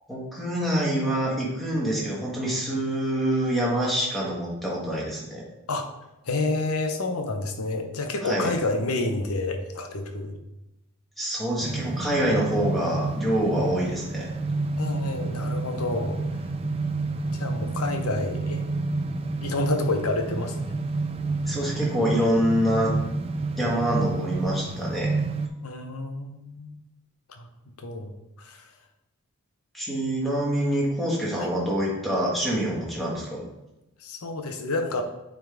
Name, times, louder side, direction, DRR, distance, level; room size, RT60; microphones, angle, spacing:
voice 1, 0.1-5.4 8.2-8.5 11.2-14.3 21.4-22.9 23.6-25.1 29.7-33.4, equal, ahead, -5 dB, 1.7 m, -26 dB
voice 2, 6.3-10.4 14.8-16.2 17.3-18.6 19.4-20.6 25.6-26.8 27.3-27.5 27.8-28.6 31.4-31.5 34.0-35.0, left 2 dB, 80° left, 5 dB, 0.8 m, -29 dB
sound 1, 11.6-25.5, right 3 dB, 25° right, 0.3 m, -29 dB
8.9 x 3.7 x 3.5 m, 0.96 s
head